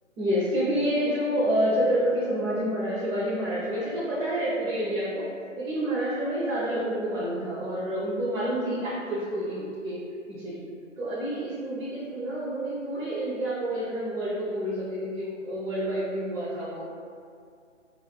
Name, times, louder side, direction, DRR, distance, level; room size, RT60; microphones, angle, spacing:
voice 1, 0.2-5.3 5.6-10.0 10.3-10.7 11.0-16.9, equal, 80° right, -9 dB, 0.8 m, -28 dB
2.4 x 2.3 x 2.2 m, 2.3 s
hypercardioid pair, 150°, 39 cm